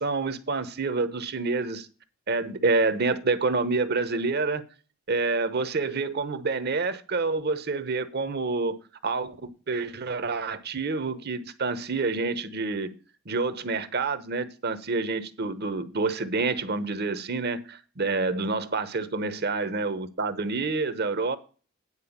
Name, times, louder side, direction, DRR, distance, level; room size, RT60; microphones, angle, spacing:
voice 1, 0.0-1.9 2.3-4.6 5.1-13.0 13.3-21.4, right 3 dB, 45° right, 0.9 m, -28 dB
9.8 x 4.6 x 7.1 m
head